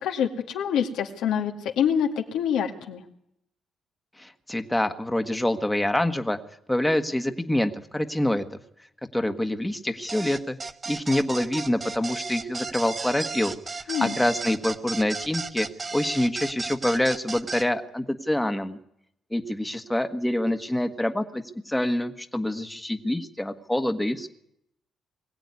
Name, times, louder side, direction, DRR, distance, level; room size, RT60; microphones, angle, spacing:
voice 1, 0.0-3.0 13.9-14.2, left 8 dB, 85° left, 3 dB, 2.1 m, -26 dB
voice 2, 4.2-6.4 6.7-8.4 9.1-10.6 10.9-13.5 14.0-15.7 15.9-18.8 19.3-24.3, left 1 dB, 10° left, 7 dB, 1.5 m, -26 dB
sound 1, 10.1-17.7, right 4 dB, 30° right, 0.9 m, -34 dB
22.0 x 15.5 x 9.7 m, 0.78 s
cardioid pair, 90°, 0 cm